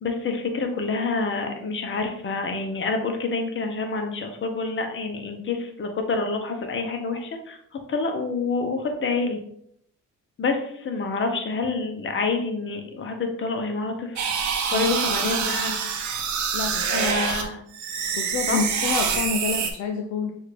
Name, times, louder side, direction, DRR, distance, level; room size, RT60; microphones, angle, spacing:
voice 1, 0.0-7.6 7.9-9.4 10.4-15.8 16.9-17.6 18.5-18.6, left 3 dB, 40° left, 4 dB, 0.9 m, -27 dB
sound 1, 14.2-17.4 17.7-19.7, right 6 dB, 70° right, 0.9 m, -26 dB
voice 2, 14.7-15.3 16.5-17.2 18.2-20.3, left 5 dB, 65° left, 4 dB, 0.5 m, -29 dB
6.4 x 2.5 x 3.2 m, 0.69 s
cardioid pair, 90°, 30 cm